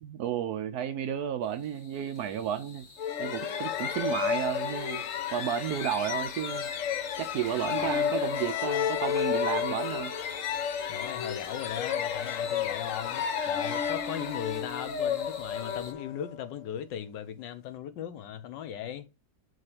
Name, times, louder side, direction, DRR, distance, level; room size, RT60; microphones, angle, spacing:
voice 1, 0.0-2.8 3.2-5.0 5.3-6.7 7.2-10.1, right 9 dB, 70° right, 1.0 m, -32 dB
sound 1, 1.4-15.9, left 3 dB, 30° left, 1.6 m, -48 dB
sound 2, 3.0-16.5, left 8 dB, 60° left, 0.9 m, -31 dB
voice 2, 10.9-19.1, left 10 dB, 80° left, 1.4 m, -38 dB
7.7 x 3.2 x 5.7 m
omnidirectional pair, 2.0 m